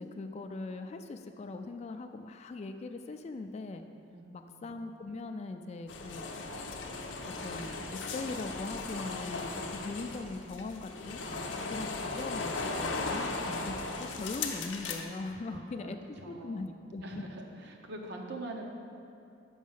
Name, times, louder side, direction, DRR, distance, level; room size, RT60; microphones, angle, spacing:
voice 1, 0.0-3.8 4.3-11.2 11.7-16.0 16.3-17.2, left 3 dB, 35° left, 7 dB, 0.3 m, -41 dB
voice 2, 4.1-4.7 11.2-11.9 15.4-18.6, right 2 dB, 60° right, 1 dB, 0.8 m, -45 dB
sound 1, 5.9-15.1, left 3 dB, 70° left, 0.6 m, -37 dB
6.3 x 5.1 x 5.6 m, 2.6 s
head